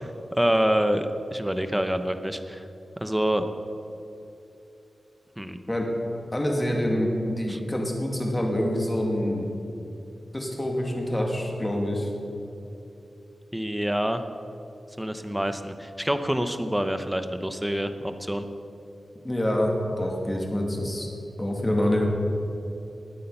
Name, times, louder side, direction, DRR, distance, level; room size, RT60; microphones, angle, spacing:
voice 1, 0.0-2.6 3.0-3.4 5.4-5.6 7.5-7.6 13.5-14.2 15.0-18.4, equal, 5° right, 8 dB, 0.8 m, -26 dB
voice 2, 6.3-9.5 10.3-12.1 19.2-21.1 21.4-22.0, left 1 dB, 15° left, 0 dB, 2.4 m, -26 dB
20.0 x 8.6 x 5.6 m, 2.9 s
wide cardioid pair, 110°, 0 cm